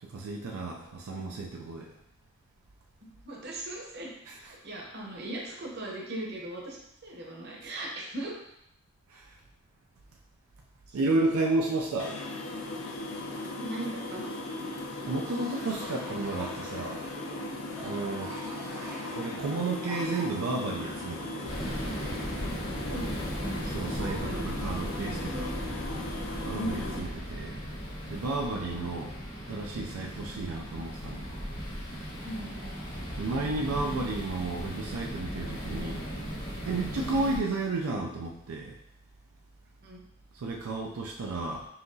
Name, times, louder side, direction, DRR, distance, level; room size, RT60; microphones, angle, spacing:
voice 1, 0.0-1.9 4.3-4.6 7.6-7.7 9.1-9.3 10.9-12.2 15.1-17.1 17.8-18.3 19.1-21.6 23.6-25.5 26.4-27.6 28.1-29.1 29.5-31.3 33.2-36.1 36.7-38.8 40.3-41.7, right 3 dB, 85° right, 0 dB, 0.4 m, -32 dB
voice 2, 3.2-4.1 4.4-8.3 13.6-14.3 18.0-18.1 22.9-23.3 23.8-24.5 25.3-25.5 26.5-27.0 28.9-29.1 32.2-32.5 37.1-37.2 39.8-40.0, right 1 dB, 50° right, -2 dB, 0.9 m, -38 dB
sound 1, 12.0-27.0, left 2 dB, 65° left, 0.5 m, -38 dB
sound 2, 13.7-22.7, right 1 dB, 15° right, 0.4 m, -46 dB
sound 3, 21.5-37.4, equal, 85° left, 1.2 m, -37 dB
5.6 x 2.9 x 2.7 m, 0.78 s
head